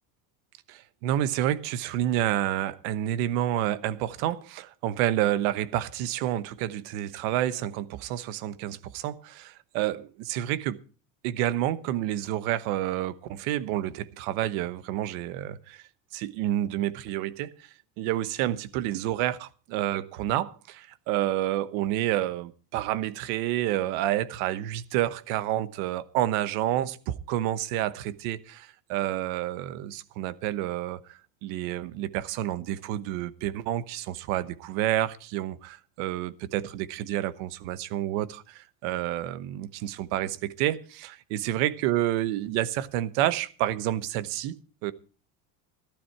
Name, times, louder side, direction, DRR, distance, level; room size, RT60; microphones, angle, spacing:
voice 1, 0.7-10.8 11.2-15.8 16.1-17.7 18.0-44.9, right 13 dB, 80° right, 1.1 m, -29 dB
14.5 x 12.0 x 4.6 m
cardioid pair, 135°, 42 cm